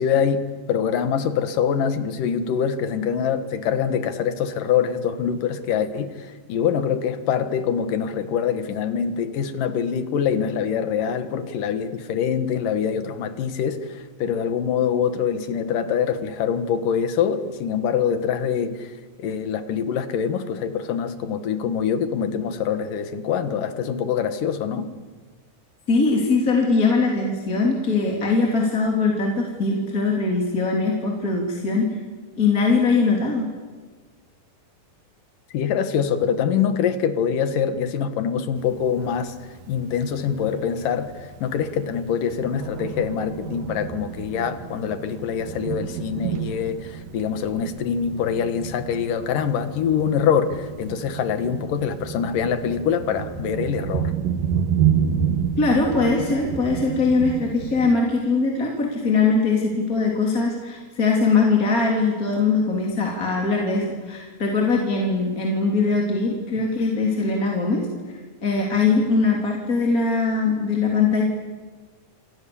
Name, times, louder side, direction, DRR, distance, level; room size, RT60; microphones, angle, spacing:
voice 1, 0.0-18.9 19.2-24.9 35.5-39.4 39.7-54.1, left 7 dB, 65° left, 9 dB, 3.1 m, -24 dB
voice 2, 25.9-31.9 32.4-33.5 55.6-67.8 68.4-71.2, left 4 dB, 25° left, -1 dB, 3.7 m, -21 dB
Thunder, 38.6-57.9, right 8 dB, 70° right, 3.0 m, -30 dB
27.5 x 27.5 x 7.2 m, 1.4 s
omnidirectional pair, 4.2 m